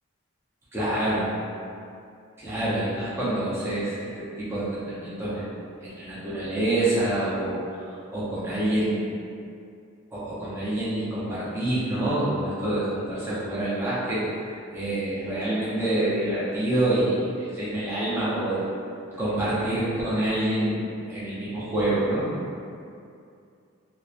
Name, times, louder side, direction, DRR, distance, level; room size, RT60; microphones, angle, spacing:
voice 1, 0.7-1.3 2.4-5.5 5.8-9.2 10.1-14.3 14.7-18.7 19.2-20.8 21.1-22.3, right 1 dB, 10° right, -11 dB, 0.5 m, -27 dB
2.7 x 2.1 x 2.3 m, 2.4 s
head